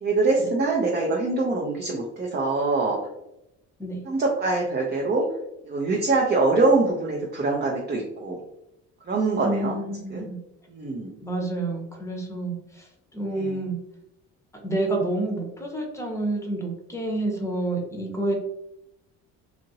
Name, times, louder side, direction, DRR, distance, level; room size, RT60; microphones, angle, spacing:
voice 1, 0.0-3.0 4.0-5.3 5.6-8.4 9.1-9.8 10.1-10.3 10.7-11.1 13.3-13.6, right 3 dB, 30° right, -1 dB, 0.6 m, -24 dB
voice 2, 9.4-10.4 11.2-13.8 14.6-18.3, right 2 dB, 10° left, 1 dB, 0.8 m, -29 dB
2.9 x 2.5 x 2.7 m, 0.85 s
cardioid pair, 95°, 31 cm